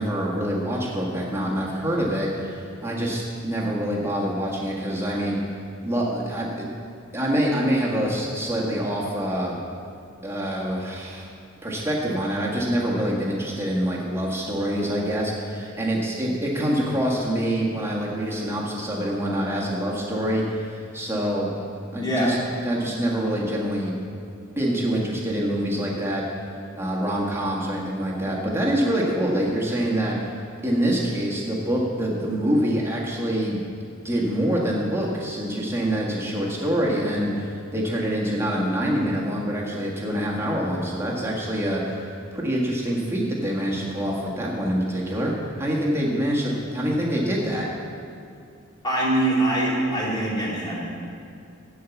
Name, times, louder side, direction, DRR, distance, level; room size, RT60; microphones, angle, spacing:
voice 1, 0.0-6.7 7.1-9.5 10.2-11.3 11.6-21.5 21.9-22.4 22.6-24.0 24.6-26.2 26.7-30.4 30.6-33.6 34.0-47.7, equal, 10° right, -4 dB, 1.5 m, -25 dB
voice 2, 21.9-22.3 48.8-50.9, right 1 dB, 20° left, -6 dB, 2.5 m, -23 dB
13.0 x 4.7 x 8.2 m, 2.4 s
head